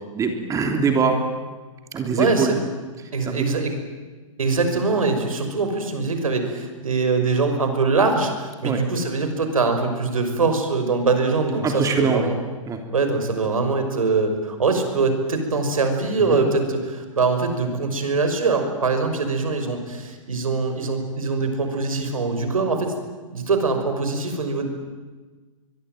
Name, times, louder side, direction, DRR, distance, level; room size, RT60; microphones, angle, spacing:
voice 1, 0.1-1.2 1.9-2.5 3.0-3.4 8.6-8.8 11.6-12.3 12.7-12.8 16.3-16.5, right 5 dB, 20° right, 4 dB, 3.2 m, -23 dB
voice 2, 2.2-2.6 3.1-3.8 4.4-12.3 12.9-22.9 23.3-24.6, right 4 dB, 85° right, 6 dB, 5.9 m, -23 dB
24.0 x 22.5 x 9.2 m, 1.3 s
hypercardioid pair, 125°, 17 cm